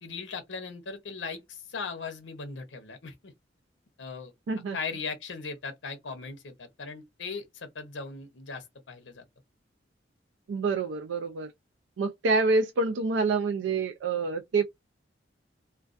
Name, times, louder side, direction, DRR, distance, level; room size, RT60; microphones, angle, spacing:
voice 1, 0.0-3.3 4.0-4.3 4.7-9.2, left 4 dB, 80° left, 0.7 m, -38 dB
voice 2, 4.5-4.8 10.5-11.5 12.0-14.6, right 3 dB, 85° right, 0.4 m, -27 dB
2.3 x 2.2 x 2.4 m
head